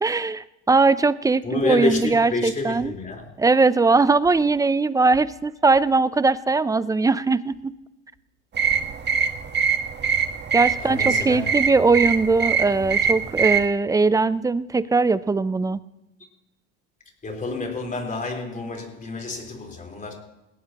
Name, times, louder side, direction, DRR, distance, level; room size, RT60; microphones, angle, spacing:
voice 1, 0.0-2.9 3.4-7.7 10.5-15.8, right 3 dB, 10° right, 16 dB, 0.4 m, -20 dB
voice 2, 1.4-3.2 10.8-11.5 17.2-20.2, left 3 dB, 25° left, 1 dB, 4.1 m, -28 dB
sound 1, 8.5-13.7, right 6 dB, 35° right, 1.4 m, -23 dB
19.5 x 17.5 x 3.0 m, 0.99 s
supercardioid pair, 105°, 32 cm